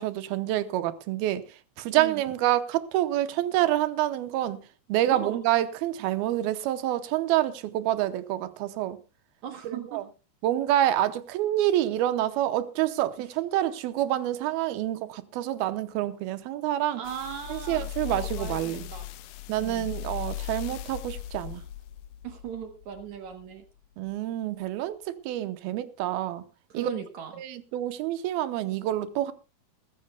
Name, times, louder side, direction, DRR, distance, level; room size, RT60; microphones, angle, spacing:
voice 1, 0.0-4.6 4.9-9.0 9.6-10.0 10.4-17.0 17.5-18.9 19.5-21.6 24.0-26.4 26.7-26.9 27.4-29.3, right 13 dB, 85° right, 2.7 m, -27 dB
voice 2, 9.4-10.0 17.0-19.1 19.5-19.9 22.2-23.7 26.7-27.3, right 9 dB, 65° right, 2.1 m, -38 dB
sound 1, 17.0-23.5 24.1-24.2, left 13 dB, 75° left, 1.9 m, -38 dB
22.0 x 13.5 x 2.2 m
omnidirectional pair, 4.3 m